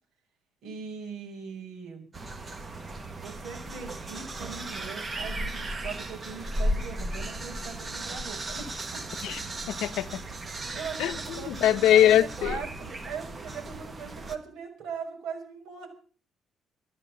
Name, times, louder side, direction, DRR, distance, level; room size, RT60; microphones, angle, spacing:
voice 1, 0.6-2.0 3.2-9.4 10.4-15.9, right 5 dB, 65° right, 6.2 m, -40 dB
sound 1, 2.1-14.4, right 1 dB, 20° right, 1.4 m, -35 dB
voice 2, 9.7-10.2 11.0-11.2 11.5-12.6, left 11 dB, 80° left, 0.8 m, -22 dB
13.5 x 11.0 x 7.6 m
cardioid pair, 175°, 0 cm